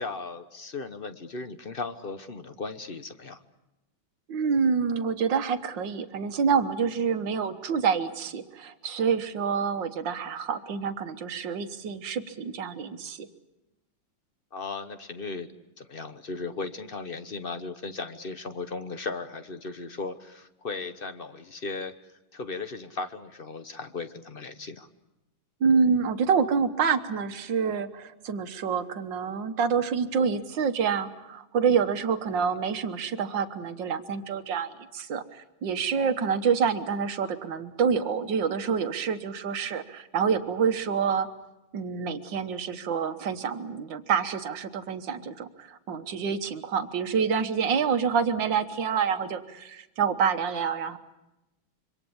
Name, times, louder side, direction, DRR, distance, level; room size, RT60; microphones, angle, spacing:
voice 1, 0.0-3.4 14.5-15.5 15.8-21.9 22.3-24.9 32.3-32.5, left 4 dB, 35° left, 9 dB, 0.9 m, -36 dB
voice 2, 4.3-13.3 25.6-41.3 41.7-51.0, right 6 dB, 65° right, 9 dB, 1.9 m, -27 dB
26.5 x 24.5 x 7.1 m, 0.95 s
omnidirectional pair, 2.3 m